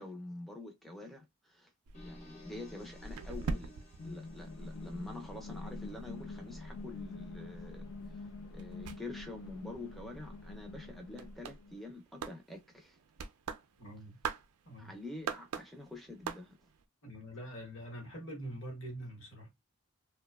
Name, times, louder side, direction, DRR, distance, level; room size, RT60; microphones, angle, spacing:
voice 1, 0.0-8.3 8.5-13.0 14.8-16.6, left 2 dB, ahead, 0.4 m, -47 dB
sound 1, 1.9-6.9, left 1 dB, 35° left, 0.7 m, -56 dB
sound 2, 1.9-5.3 5.6-16.8, right 5 dB, 90° right, 0.4 m, -45 dB
sound 3, 4.0-11.8, left 2 dB, 80° left, 0.4 m, -46 dB
voice 2, 13.8-14.2 14.7-14.9 17.0-19.5, right 1 dB, 60° left, 1.0 m, -44 dB
2.6 x 2.2 x 2.2 m
head